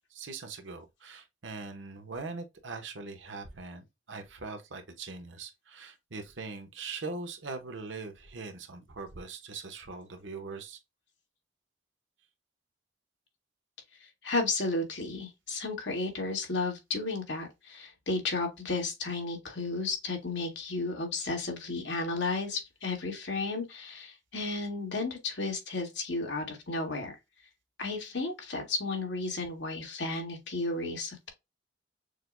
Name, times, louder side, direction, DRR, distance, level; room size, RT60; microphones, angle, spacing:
voice 1, 0.1-10.8, right 4 dB, 85° right, 1.0 m, -41 dB
voice 2, 14.2-27.1 27.8-31.3, left 3 dB, 70° left, 1.6 m, -33 dB
6.5 x 2.2 x 2.5 m
head